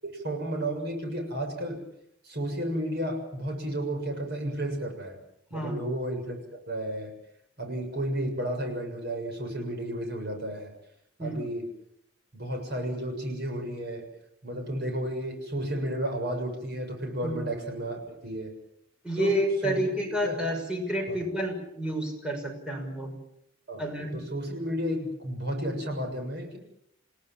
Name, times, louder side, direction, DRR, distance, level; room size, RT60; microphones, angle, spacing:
voice 1, 0.0-1.8 2.2-5.2 5.5-7.1 7.6-10.7 11.2-11.6 12.3-14.0 14.4-18.5 19.2-19.3 19.6-19.8 20.2-20.4 21.1-21.2 23.7-23.8 24.1-26.6, right 1 dB, 55° right, 4 dB, 7.1 m, -32 dB
voice 2, 19.0-23.1 23.8-24.2, equal, 5° right, 2 dB, 6.3 m, -29 dB
29.0 x 18.0 x 7.5 m, 0.77 s
head